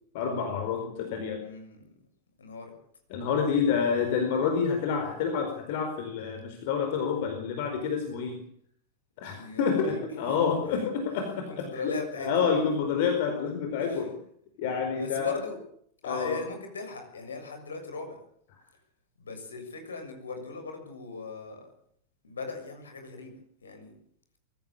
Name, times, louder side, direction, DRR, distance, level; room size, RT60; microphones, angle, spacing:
voice 1, 0.1-1.4 3.1-8.4 9.2-11.4 11.8-14.1 14.6-15.4 16.0-16.4, left 6 dB, 50° left, 5 dB, 4.6 m, -28 dB
voice 2, 1.4-1.9 2.4-2.7 3.7-3.8 9.3-10.4 10.7-11.1 11.5-12.5 13.7-14.2 15.0-15.6 16.0-18.2 19.2-21.6 22.2-23.9, left 4 dB, 70° left, 5 dB, 6.9 m, -39 dB
23.0 x 15.5 x 8.7 m, 0.66 s
figure-of-eight pair, 90°, 0 cm